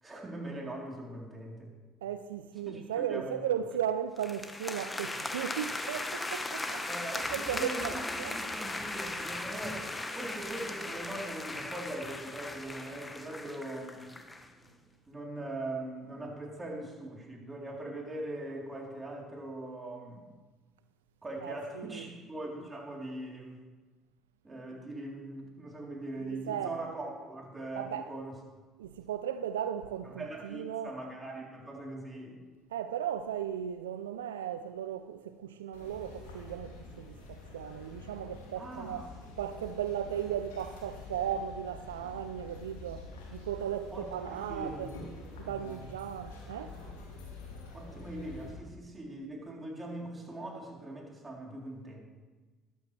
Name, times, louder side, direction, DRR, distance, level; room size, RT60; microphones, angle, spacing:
voice 1, 0.0-1.7 2.7-3.4 6.9-9.8 10.1-14.1 15.1-20.3 21.2-23.7 24.4-28.3 30.0-32.4 38.6-39.1 43.9-45.0 45.4-45.9 47.7-52.0, right 1 dB, 20° right, 3.4 m, -41 dB
voice 2, 2.0-8.5 21.4-22.1 26.2-26.8 27.7-28.1 28.8-30.9 32.7-39.1 39.4-44.9 45.4-46.7, right 9 dB, 85° right, 0.4 m, -36 dB
sound 1, 4.2-14.5, left 2 dB, 15° left, 1.1 m, -38 dB
sound 2, 35.7-48.5, left 3 dB, 85° left, 2.3 m, -47 dB
13.5 x 11.5 x 3.3 m
hypercardioid pair, 65°, 0 cm